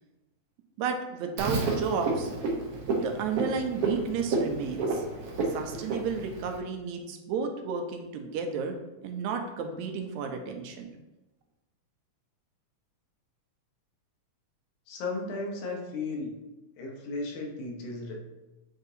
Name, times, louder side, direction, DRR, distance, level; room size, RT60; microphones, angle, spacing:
voice 1, 0.8-2.3 3.0-5.1 5.5-8.8 9.0-10.9, right 5 dB, 80° right, 5 dB, 2.0 m, -32 dB
Frog, 1.4-6.6, right 3 dB, 65° right, 1.7 m, -31 dB
voice 2, 14.9-16.4 16.8-18.1, left 3 dB, 90° left, 0 dB, 2.5 m, -35 dB
8.8 x 4.0 x 2.7 m, 1.1 s
omnidirectional pair, 3.3 m